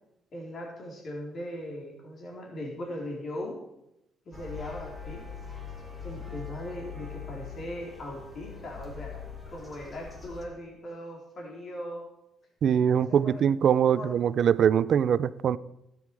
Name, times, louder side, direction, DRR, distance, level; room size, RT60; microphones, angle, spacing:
voice 1, 0.3-3.6 4.3-5.3 6.0-12.0 12.9-13.4 14.0-14.1, left 1 dB, 50° left, 3.9 m, -39 dB
sound 1, 4.3-10.4, left 6 dB, 15° left, 3.4 m, -42 dB
voice 2, 12.6-15.6, right 8 dB, 60° right, 0.5 m, -23 dB
13.0 x 10.5 x 4.8 m
cardioid pair, 90°, 0 cm